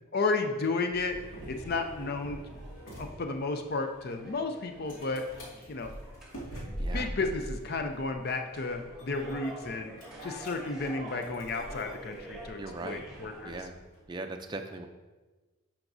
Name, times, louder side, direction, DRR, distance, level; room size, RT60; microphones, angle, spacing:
voice 1, 0.1-2.4 3.0-5.2 5.7-5.9 6.6-9.9 10.2-13.6, left 3 dB, 45° left, 5 dB, 0.5 m, -33 dB
sound 1, 0.9-14.0, equal, 75° left, 2.2 m, -44 dB
sound 2, 1.4-13.5, right 1 dB, ahead, 2.0 m, -48 dB
voice 2, 12.6-13.0 13.4-13.8 14.1-14.9, right 2 dB, 20° right, 4 dB, 0.4 m, -39 dB
10.5 x 5.9 x 2.7 m, 1.2 s
head